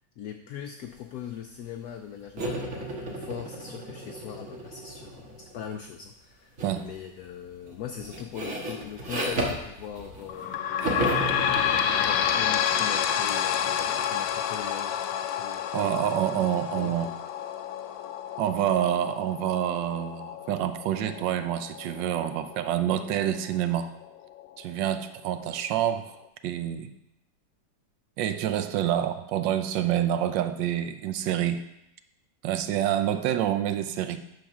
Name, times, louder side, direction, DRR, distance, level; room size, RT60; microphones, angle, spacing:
voice 1, 0.2-10.7 11.7-15.7 16.4-17.1, left 9 dB, 70° left, 5 dB, 0.9 m, -41 dB
sound 1, 2.4-5.7 6.6-6.9 7.2-10.5 10.8-14.4, right 1 dB, 45° right, 1.6 m, -34 dB
sound 2, 10.3-23.5 24.0-24.1 24.4-24.5 25.3-25.4, left 9 dB, 85° left, 1.3 m, -29 dB
voice 2, 15.7-17.1 18.4-23.9 24.6-26.1 26.4-26.9 28.2-31.6 32.4-34.2, right 11 dB, 80° right, 10 dB, 1.3 m, -27 dB
9.1 x 3.9 x 6.0 m, 0.85 s
omnidirectional pair, 2.0 m